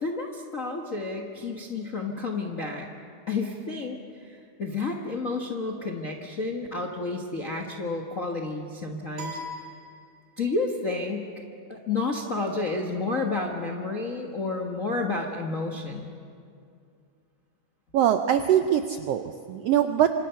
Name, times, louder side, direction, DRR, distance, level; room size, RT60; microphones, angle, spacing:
voice 1, 0.0-2.9 3.3-4.0 4.2-9.4 10.4-11.3 11.7-16.1, left 3 dB, 55° left, 1 dB, 0.9 m, -30 dB
sound 1, 9.2-10.6, left 1 dB, 50° right, 3.9 m, -40 dB
voice 2, 17.9-20.1, right 10 dB, 80° right, 7 dB, 1.4 m, -23 dB
26.5 x 26.0 x 5.7 m, 2.4 s
omnidirectional pair, 3.6 m